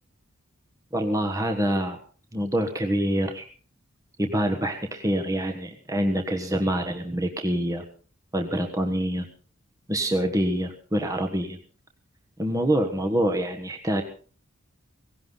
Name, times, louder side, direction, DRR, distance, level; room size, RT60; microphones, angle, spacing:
voice 1, 0.9-2.0 2.3-3.5 4.2-7.8 8.3-9.3 9.9-11.6 12.4-14.0, right 1 dB, 15° right, 4 dB, 1.3 m, -26 dB
18.0 x 16.5 x 3.9 m, 0.42 s
head